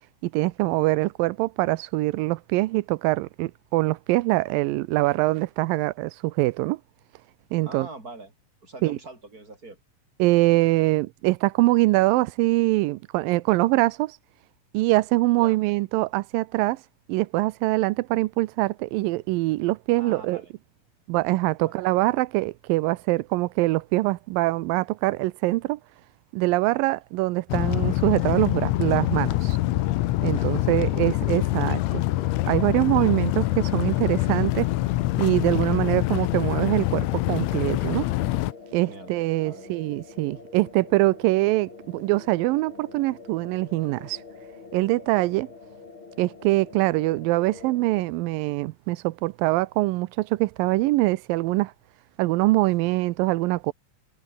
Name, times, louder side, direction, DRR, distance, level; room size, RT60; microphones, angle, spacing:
voice 1, 0.2-6.8 7.5-7.9 8.8-9.0 10.2-14.2 14.7-16.8 17.1-20.4 21.1-25.8 26.3-29.6 30.2-32.0 32.5-34.7 35.2-38.1 38.7-44.2 44.7-45.5 46.2-51.7 52.2-53.7, right 20 dB, 90° right, 2.4 m, -23 dB
voice 2, 7.6-8.3 8.6-9.8 15.4-15.6 20.0-20.5 21.7-21.8 30.2-31.2 38.8-39.1 39.4-39.9, right 3 dB, 25° right, 6.1 m, -43 dB
sound 1, 27.5-38.5, left 17 dB, 85° left, 1.5 m, -25 dB
sound 2, 28.0-48.0, left 4 dB, 35° left, 4.6 m, -45 dB
omnidirectional pair, 3.9 m